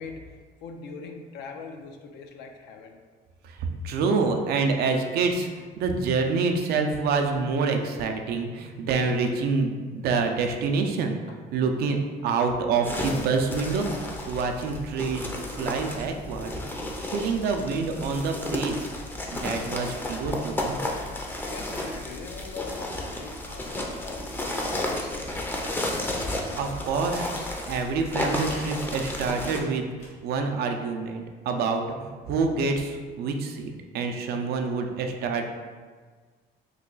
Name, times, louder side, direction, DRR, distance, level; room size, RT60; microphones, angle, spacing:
voice 1, 0.0-3.0 11.3-11.4 21.4-25.4, left 5 dB, 85° left, 4 dB, 0.4 m, -42 dB
voice 2, 3.8-11.2 11.5-12.0 12.2-13.9 14.3-15.3 15.6-16.5 17.0-18.8 19.3-20.8 26.6-27.3 27.7-29.9 30.2-35.4, right 4 dB, 70° right, 4 dB, 0.4 m, -27 dB
sound 1, 12.8-29.6, left 1 dB, 10° left, 0.4 m, -32 dB
sound 2, 21.8-22.1 22.7-30.1, left 1 dB, 70° left, 1.1 m, -49 dB
3.1 x 2.3 x 3.8 m, 1.5 s
cardioid pair, 110°, 17 cm